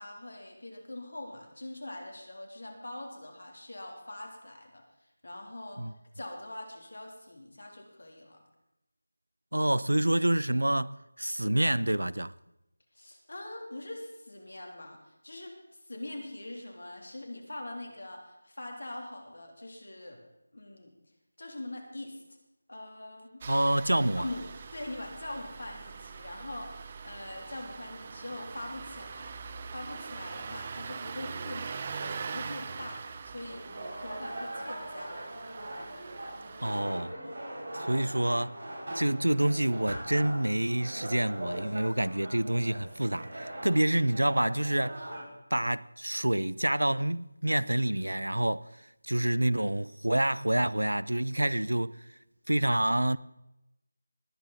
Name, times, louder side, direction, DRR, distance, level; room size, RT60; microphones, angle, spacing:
voice 1, 0.0-4.8 5.2-5.8 6.1-8.4 12.9-20.2 20.5-20.9 21.4-22.2 22.7-23.4 24.2-24.4 24.7-29.3 29.7-33.6 34.0-35.3, left 1 dB, 65° left, 3.1 m, -43 dB
voice 2, 9.5-12.3 23.5-24.2 36.6-37.1 37.7-38.6 38.9-45.1 45.5-48.6 49.0-52.0 52.5-53.2, right 1 dB, 90° right, 0.5 m, -27 dB
Engine starting, 23.4-36.8, right 5 dB, 30° right, 0.6 m, -42 dB
sound 1, 33.4-45.2, right 1 dB, 50° right, 6.3 m, -41 dB
19.5 x 9.0 x 4.1 m
figure-of-eight pair, 165°, 0 cm